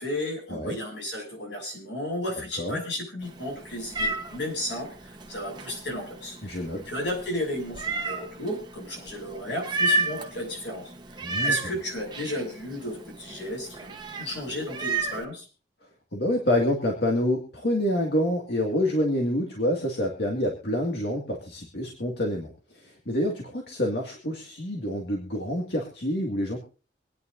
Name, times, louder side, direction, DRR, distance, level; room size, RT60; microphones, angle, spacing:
voice 1, 0.0-6.6 6.9-10.8 11.4-15.4, left 1 dB, 85° left, 0 dB, 6.9 m, -33 dB
Meow, 3.2-15.2, right 2 dB, 25° right, 1.1 m, -33 dB
voice 2, 6.4-6.8 11.2-11.6 16.1-26.6, left 1 dB, 70° left, 0 dB, 2.1 m, -27 dB
25.5 x 9.9 x 2.6 m, 0.35 s
head